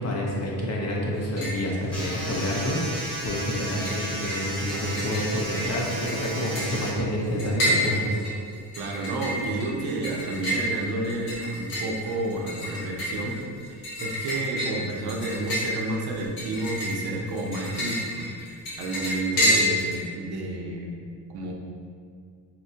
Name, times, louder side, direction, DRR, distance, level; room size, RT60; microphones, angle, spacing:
voice 1, 0.0-8.2, equal, 35° left, -3 dB, 0.6 m, -28 dB
sound 1, 1.1-1.7 2.0-2.7 2.9-20.0, equal, 65° left, 1.2 m, -30 dB
sound 2, 1.9-6.9, right 1 dB, 5° left, 1.1 m, -34 dB
voice 2, 8.8-21.0 21.3-21.5, right 2 dB, 60° right, 0 dB, 0.6 m, -31 dB
4.0 x 2.2 x 2.7 m, 2.2 s
cardioid pair, 105°, 43 cm